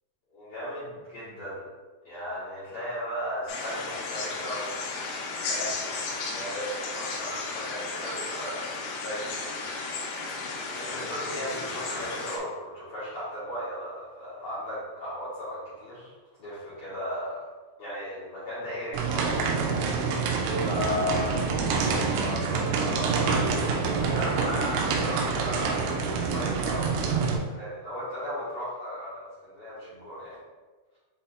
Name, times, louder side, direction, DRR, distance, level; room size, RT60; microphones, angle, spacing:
voice 1, 0.3-1.6 2.0-4.8 5.4-10.4 10.7-16.1 16.4-17.4 17.8-19.6 20.6-21.5 21.8-26.9 27.5-30.4, left 1 dB, 65° left, -13 dB, 2.0 m, -36 dB
sound 1, 3.5-12.4, left 3 dB, 85° left, 2.4 m, -34 dB
sound 2, 18.9-27.4, right 5 dB, 85° right, 3.2 m, -27 dB
8.2 x 2.8 x 2.3 m, 1.3 s
omnidirectional pair, 5.7 m